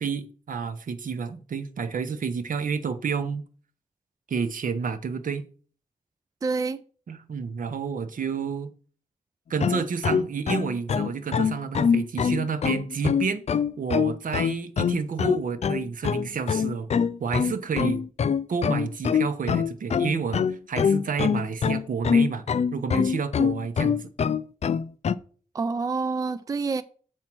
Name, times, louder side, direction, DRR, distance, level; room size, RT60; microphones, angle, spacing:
voice 1, 0.0-3.4 4.3-5.4 7.1-8.7 9.5-13.4 13.8-16.9 17.2-18.0 18.5-22.5 22.7-24.1, right 5 dB, 75° right, 0.9 m, -30 dB
voice 2, 6.4-6.8 25.5-26.8, right 4 dB, 25° right, 0.3 m, -27 dB
sound 1, 9.6-25.1, left 7 dB, 50° left, 0.4 m, -24 dB
7.4 x 4.4 x 6.0 m
wide cardioid pair, 130°, 14 cm